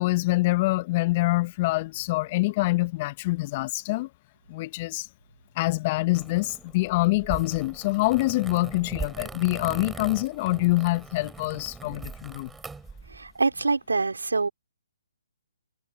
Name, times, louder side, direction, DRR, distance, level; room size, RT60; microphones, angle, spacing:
voice 1, 0.0-4.1 4.5-5.1 5.6-12.5, left 21 dB, 35° left, 1.4 m, -25 dB
sound 1, 6.1-13.3, right 4 dB, 5° right, 7.8 m, -41 dB
voice 2, 13.1-14.5, right 3 dB, 80° right, 4.2 m, -25 dB
figure-of-eight pair, 140°, 0 cm